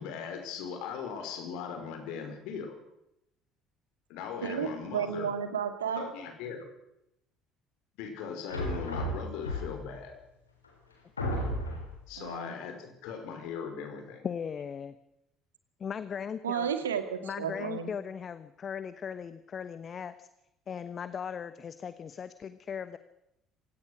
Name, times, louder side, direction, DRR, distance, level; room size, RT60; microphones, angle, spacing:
voice 1, 0.0-2.8 4.1-5.3 6.0-6.6 8.0-10.1 12.1-14.3, left 6 dB, 65° left, 6 dB, 5.3 m, -39 dB
voice 2, 4.4-6.1 12.2-12.5 16.4-17.9, right 7 dB, 80° right, 9 dB, 2.3 m, -32 dB
sound 1, 8.5-10.0 10.6-10.7 11.2-12.0, equal, 85° left, 4.2 m, -33 dB
voice 3, 14.2-14.9 15.8-16.7 17.2-20.3 20.7-23.0, left 7 dB, 40° left, 13 dB, 1.2 m, -38 dB
26.5 x 17.5 x 6.4 m, 0.84 s
figure-of-eight pair, 55°, 0 cm